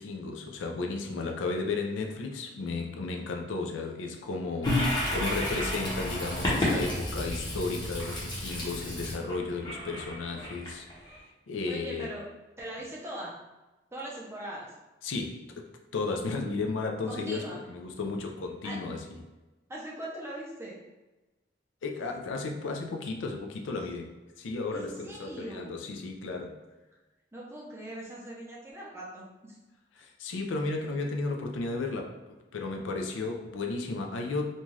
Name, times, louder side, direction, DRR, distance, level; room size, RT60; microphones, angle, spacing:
voice 1, 0.0-10.9 11.5-12.1 15.0-15.7 15.9-19.2 21.8-24.1 24.4-26.6 30.0-32.1 32.5-34.5, left 3 dB, 90° left, 3 dB, 0.4 m, -34 dB
Toilet flush, 4.6-11.2, left 1 dB, 25° left, 0.8 m, -31 dB
voice 2, 11.7-12.2 12.6-13.3 13.9-14.7 17.1-17.6 18.6-18.8 19.7-20.8 24.7-25.8 27.3-29.6, right 1 dB, 15° right, -4 dB, 0.5 m, -40 dB
2.6 x 2.3 x 3.1 m, 1.1 s
head